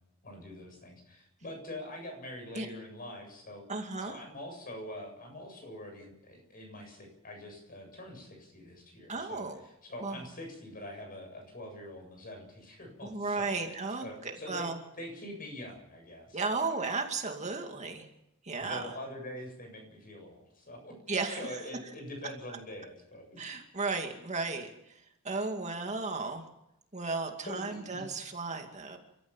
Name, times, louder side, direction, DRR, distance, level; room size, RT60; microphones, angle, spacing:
voice 1, 0.2-3.6 4.0-9.4 9.8-14.7 15.0-16.4 18.6-23.4 27.5-28.0, left 1 dB, 40° left, 3 dB, 7.7 m, -44 dB
voice 2, 3.7-4.2 9.1-9.6 10.0-10.3 13.0-14.8 16.3-18.1 18.4-18.9 21.1-21.6 23.4-26.5 26.9-29.0, right 3 dB, 35° right, 3 dB, 2.3 m, -35 dB
29.5 x 14.0 x 7.3 m, 0.85 s
head